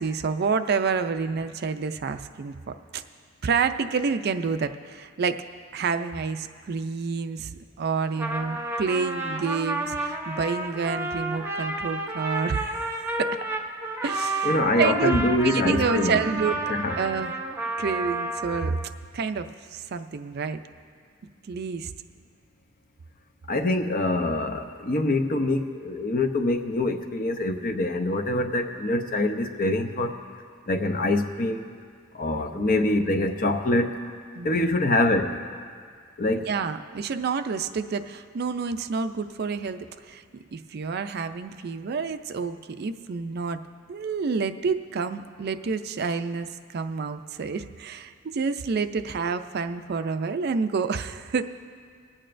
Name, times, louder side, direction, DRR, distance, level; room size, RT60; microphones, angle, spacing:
voice 1, 0.0-2.5 2.9-3.0 3.4-5.4 5.7-13.3 14.0-16.6 17.0-17.3 17.8-18.8 19.1-20.6 21.5-21.9 32.3-32.7 34.4-34.7 36.5-40.2 40.5-43.6 43.9-51.4, right 5 dB, 55° right, 10 dB, 0.4 m, -28 dB
Trumpet, 8.0-18.9, right 2 dB, 10° right, 0.7 m, -31 dB
voice 2, 14.4-16.4 16.7-17.0 23.5-30.2 30.7-31.7 32.1-34.0 34.4-35.4 36.2-36.5, left 2 dB, 45° left, 6 dB, 0.7 m, -25 dB
25.5 x 8.7 x 2.5 m, 2.1 s
head